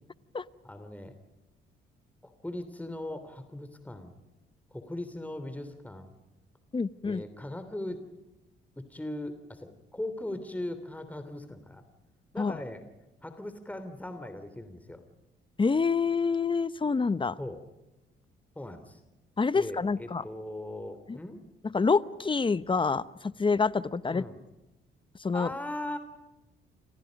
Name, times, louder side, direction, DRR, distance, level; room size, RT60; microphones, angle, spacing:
voice 1, 0.6-1.1 2.2-4.2 4.7-6.1 7.0-8.0 8.8-11.8 12.3-12.8 13.2-15.0 17.4-17.6 18.5-19.0 19.5-21.4 24.1-24.4 25.3-26.0, left 1 dB, 5° left, 9 dB, 3.2 m, -39 dB
voice 2, 6.7-7.2 12.4-12.6 15.6-17.4 19.4-20.2 21.1-21.2 21.6-24.2 25.2-25.5, left 4 dB, 25° left, 16 dB, 0.9 m, -27 dB
30.0 x 27.0 x 5.3 m, 1.0 s
cardioid pair, 90°, 20 cm